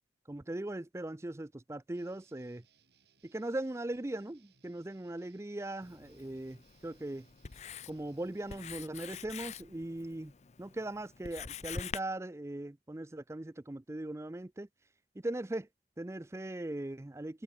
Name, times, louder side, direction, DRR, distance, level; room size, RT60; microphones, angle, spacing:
voice 1, 0.3-2.6 3.2-7.3 7.9-10.3 10.6-14.7 15.2-15.7 16.0-17.4, right 1 dB, 15° right, 0.4 m, -39 dB
Guitar, 1.9-8.8, right 7 dB, 65° right, 6.3 m, -70 dB
Writing, 5.8-12.0, left 6 dB, 40° left, 0.6 m, -46 dB
head